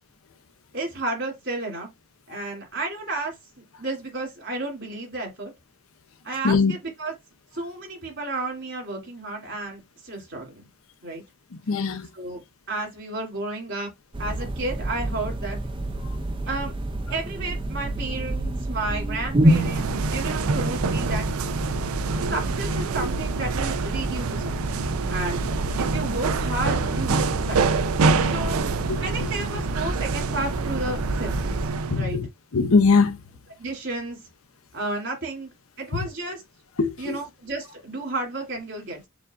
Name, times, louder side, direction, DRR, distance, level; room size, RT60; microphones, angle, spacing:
voice 1, 0.7-1.9 2.3-3.3 3.8-5.5 6.2-7.1 7.5-10.7 11.0-11.2 12.1-12.4 12.7-13.9 14.2-15.6 16.5-16.7 17.1-21.3 22.3-24.8 25.1-25.4 25.8-27.9 28.2-28.6 29.0-31.7 31.9-32.2 33.6-34.2 34.7-35.5 35.8-36.4 37.0-39.1, right 2 dB, 55° right, 2.8 m, -32 dB
voice 2, 11.7-12.1 28.9-29.0 31.9-32.3 32.5-33.2 36.8-37.2, left 4 dB, 80° left, 0.7 m, -20 dB
sound 1, 14.1-31.7, right 1 dB, 25° right, 0.5 m, -29 dB
sound 2, 19.5-32.1, right 4 dB, 85° right, 0.4 m, -27 dB
6.9 x 2.5 x 2.5 m
head